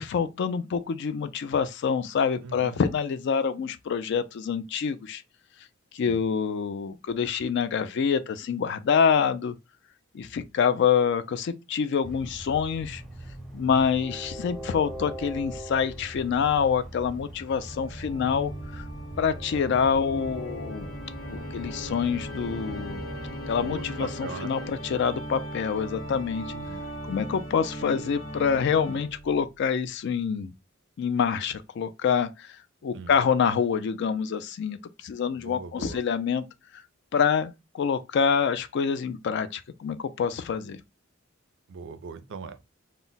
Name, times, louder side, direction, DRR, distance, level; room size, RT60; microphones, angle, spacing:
voice 1, 0.0-5.2 5.9-9.6 10.1-13.0 13.5-18.8 19.2-20.9 21.3-23.0 23.5-26.5 27.1-30.5 31.0-32.5 32.8-34.8 35.0-36.5 37.1-40.8, left 6 dB, 60° left, 0.3 m, -26 dB
voice 2, 2.4-2.8 6.0-6.2 13.6-14.0 23.6-24.5 26.5-26.8 32.9-33.2 35.3-36.0 41.7-42.6, right 4 dB, 60° right, 0.4 m, -40 dB
Train, 12.0-23.3, right 1 dB, ahead, 0.6 m, -41 dB
Organ, 17.6-29.4, equal, 90° left, 1.0 m, -38 dB
2.1 x 2.0 x 3.8 m
head